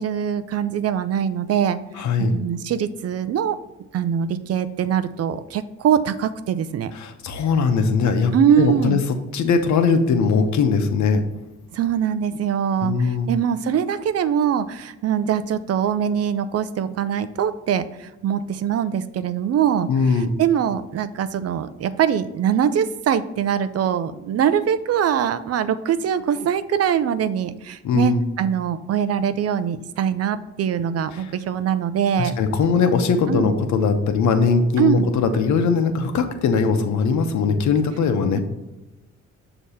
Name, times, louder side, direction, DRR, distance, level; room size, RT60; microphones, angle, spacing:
voice 1, 0.0-1.8 2.2-3.6 3.9-6.9 8.3-9.0 11.7-32.3 33.3-33.6 34.8-35.1 38.3-38.4, right 8 dB, 55° right, 13 dB, 0.5 m, -22 dB
voice 2, 2.0-2.3 6.9-9.0 9.3-11.2 12.8-13.3 19.9-20.3 27.8-28.2 31.1-31.3 32.2-38.4, left 5 dB, 70° left, 7 dB, 0.9 m, -20 dB
6.5 x 3.0 x 5.6 m, 1.0 s
cardioid pair, 90°, 30 cm